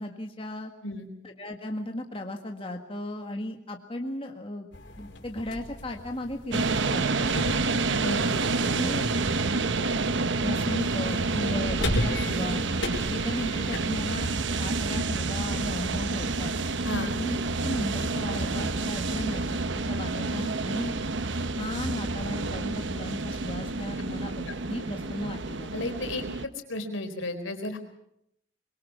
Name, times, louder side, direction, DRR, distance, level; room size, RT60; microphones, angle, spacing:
voice 1, 0.0-0.7 1.2-4.7 5.0-7.4 8.7-9.1 10.4-12.7 13.1-14.3 14.6-16.5 17.0-17.4 17.6-20.9 21.6-25.8, left 1 dB, 25° left, 3 dB, 1.7 m, -35 dB
sound 1, 4.7-14.7, left 1 dB, 65° left, 5.2 m, -36 dB
sound 2, 6.5-26.5, right 3 dB, 65° right, 1.0 m, -29 dB
voice 2, 8.0-8.4 16.8-17.1 24.5-24.6 25.7-27.8, left 2 dB, 90° left, 5 dB, 4.2 m, -33 dB
24.5 x 22.5 x 6.1 m, 0.77 s
head